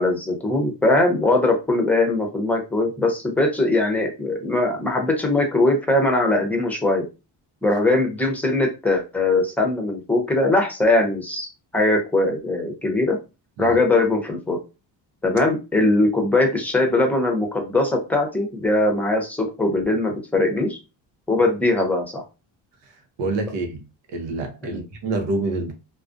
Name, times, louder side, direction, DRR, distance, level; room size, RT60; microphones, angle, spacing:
voice 1, 0.0-7.0 7.6-11.5 11.7-13.2 13.6-14.6 15.2-20.8 21.3-22.2 24.6-24.8, left 2 dB, 5° left, 0.6 m, -21 dB
voice 2, 23.2-23.8 24.1-25.7, right 2 dB, 90° right, 0.7 m, -27 dB
2.4 x 2.1 x 2.5 m
cardioid pair, 90°, 43 cm